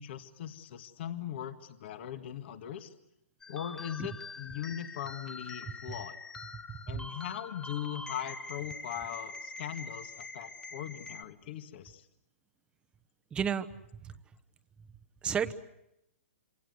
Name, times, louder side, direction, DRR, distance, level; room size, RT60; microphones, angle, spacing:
voice 1, 0.0-2.9 3.5-6.2 6.9-12.1, left 10 dB, 50° left, 10 dB, 2.0 m, -40 dB
sound 1, 3.4-11.2, left 3 dB, 10° left, 1.2 m, -44 dB
voice 2, 6.7-7.0 13.3-13.7 14.0-14.1 15.2-15.5, right 7 dB, 15° right, 9 dB, 1.1 m, -32 dB
27.5 x 25.5 x 8.1 m, 0.83 s
hypercardioid pair, 140°, 7 cm